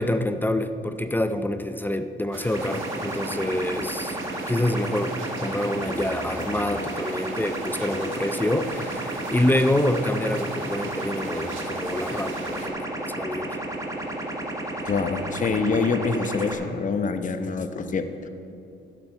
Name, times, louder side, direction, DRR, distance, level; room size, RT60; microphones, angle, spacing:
voice 1, 0.0-4.2 4.5-13.6, left 1 dB, 10° left, 10 dB, 0.5 m, -26 dB
sound 1, 2.3-12.7, right 4 dB, 80° right, 1.6 m, -40 dB
sound 2, 2.5-16.5, right 1 dB, 15° right, 1.5 m, -32 dB
voice 2, 14.8-18.3, left 4 dB, 40° left, 9 dB, 0.8 m, -26 dB
11.5 x 11.5 x 4.4 m, 2.7 s
cardioid pair, 90°, 20 cm